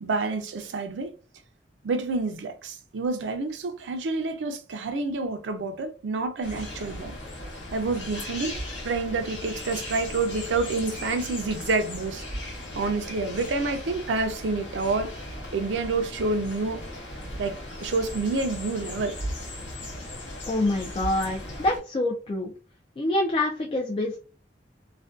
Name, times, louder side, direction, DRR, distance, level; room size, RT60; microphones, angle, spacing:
voice 1, 0.0-1.1 1.8-7.2 7.7-12.2 12.7-15.1 15.5-16.9 17.4-19.2, right 3 dB, 85° right, 0.4 m, -28 dB
sound 1, 6.4-21.8, left 1 dB, 75° left, 0.9 m, -37 dB
voice 2, 20.5-22.5 23.0-24.2, left 1 dB, 30° left, 0.3 m, -26 dB
2.5 x 2.2 x 2.3 m
head